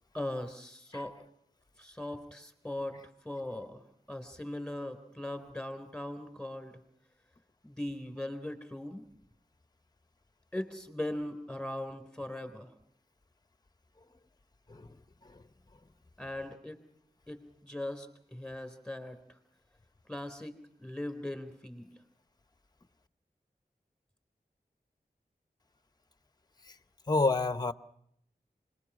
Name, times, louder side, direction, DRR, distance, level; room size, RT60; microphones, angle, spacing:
voice 1, 0.1-1.1 1.8-3.0 3.2-3.8 4.1-6.8 7.6-9.0 10.5-12.7 16.2-16.8 17.3-19.2 20.1-20.5 20.8-21.9, left 1 dB, 5° left, 3.6 m, -39 dB
voice 2, 27.1-27.7, left 3 dB, 25° left, 0.8 m, -29 dB
26.0 x 20.5 x 6.2 m
wide cardioid pair, 60°, 16 cm